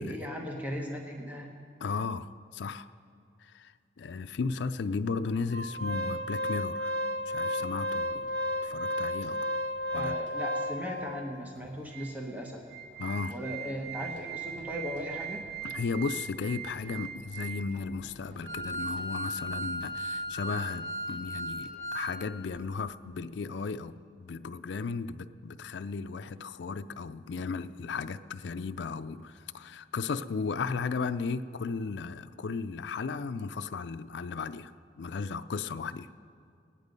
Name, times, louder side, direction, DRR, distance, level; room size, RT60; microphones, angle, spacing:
voice 1, 0.0-1.5 5.8-5.9 9.9-12.7 13.3-15.4, equal, 10° right, 0 dB, 1.1 m, -37 dB
voice 2, 1.8-2.9 3.4-6.9 7.3-8.3 8.6-9.4 9.9-10.2 13.0-13.4 15.6-34.7 35.0-36.1, left 4 dB, 65° left, 11 dB, 0.4 m, -35 dB
Organ, 5.5-11.0 11.6-11.7 11.9-12.1 12.5-22.1 22.4-22.6, equal, 85° right, 2.9 m, -35 dB
18.0 x 10.0 x 5.3 m, 2.4 s
head